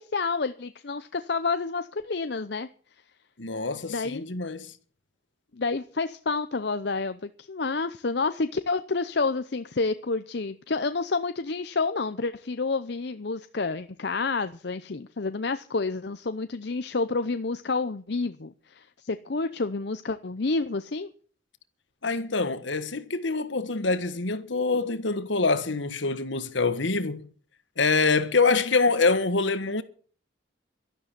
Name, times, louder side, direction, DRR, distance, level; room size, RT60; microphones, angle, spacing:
voice 1, 0.0-2.7 3.9-4.3 5.6-21.1 28.5-28.6, left 3 dB, 60° left, 0.7 m, -29 dB
voice 2, 3.4-4.7 22.0-27.3 27.8-29.8, left 3 dB, 75° left, 1.5 m, -25 dB
12.5 x 11.5 x 7.5 m
head